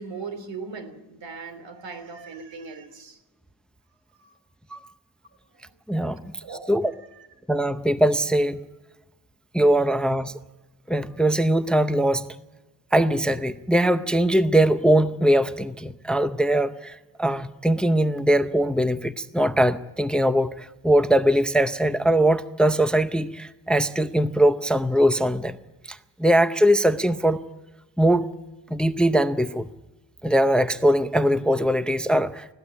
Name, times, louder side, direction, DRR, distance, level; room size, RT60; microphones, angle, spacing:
voice 1, 0.0-3.2 4.2-4.4 5.6-5.7 6.4-6.7 7.1-7.3, right 4 dB, 85° right, 3.2 m, -38 dB
voice 2, 5.9-6.2 6.7-6.9 7.5-8.6 9.5-10.3 10.9-12.4 12.9-25.6 25.9-27.4 28.0-28.3 28.7-29.7 30.2-32.5, right 1 dB, ahead, 0.6 m, -21 dB
21.0 x 15.0 x 8.3 m
wide cardioid pair, 135°, 43 cm